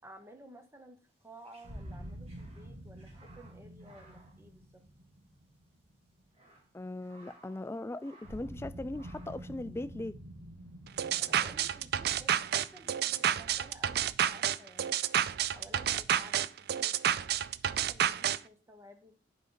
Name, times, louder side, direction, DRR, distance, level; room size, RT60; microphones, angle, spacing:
voice 1, 0.0-4.8 11.1-15.0 15.5-17.1 17.6-19.2, right 1 dB, 15° right, 1.2 m, -54 dB
sound 1, 1.1-5.2 5.5-5.6 6.1-7.7 8.0-8.6 8.9-9.6, right 3 dB, 35° right, 2.1 m, -61 dB
sound 2, 1.6-6.6 8.2-13.9, right 1 dB, 85° right, 2.2 m, -48 dB
voice 2, 6.7-10.2, left 2 dB, 15° left, 0.3 m, -39 dB
sound 3, 11.0-18.4, right 10 dB, 60° right, 0.4 m, -30 dB
10.5 x 5.2 x 4.0 m
head